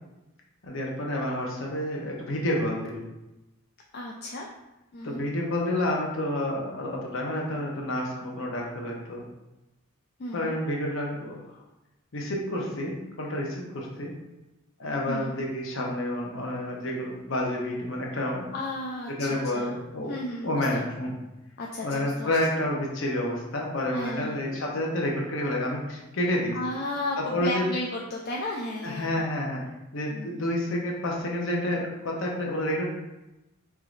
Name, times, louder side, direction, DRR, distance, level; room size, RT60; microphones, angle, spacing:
voice 1, 0.6-3.1 5.0-9.2 10.3-11.5 12.1-14.1 14.8-18.5 19.2-20.2 20.4-21.1 21.8-26.6 27.2-27.6 28.8-29.6 29.9-32.9, left 1 dB, 60° left, -1 dB, 0.8 m, -29 dB
voice 2, 3.9-4.5 4.9-5.2 10.2-10.5 15.1-15.3 18.5-19.7 20.1-20.8 21.6-22.4 23.9-24.4 26.5-29.2 30.1-30.4, left 2 dB, 45° left, -1 dB, 0.3 m, -34 dB
4.7 x 3.0 x 2.5 m, 0.97 s
head